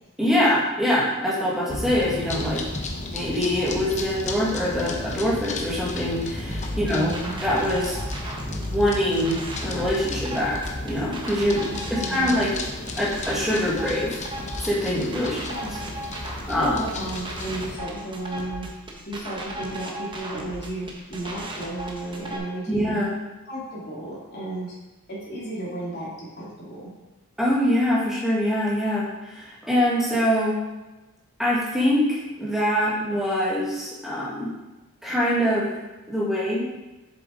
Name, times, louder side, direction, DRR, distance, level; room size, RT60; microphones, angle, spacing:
voice 1, 0.2-2.6 3.1-7.1 7.4-8.0 8.7-11.6 11.9-12.5 13.0-14.2 14.6-15.4 16.5-16.8 22.7-23.1 27.4-30.6 31.4-34.5 35.0-35.7 36.1-36.7, equal, ahead, -7 dB, 1.9 m, -24 dB
sound 1, 1.7-17.8, left 2 dB, 30° left, 0.8 m, -34 dB
sound 2, 6.4-22.4, right 1 dB, 20° right, 1.1 m, -36 dB
voice 2, 6.9-7.4 12.0-12.5 15.5-15.7 16.5-18.6 19.1-23.0 23.5-24.7 25.1-26.1 26.4-26.9, right 1 dB, 45° left, -6 dB, 3.0 m, -33 dB
7.6 x 7.3 x 3.9 m, 1.1 s
head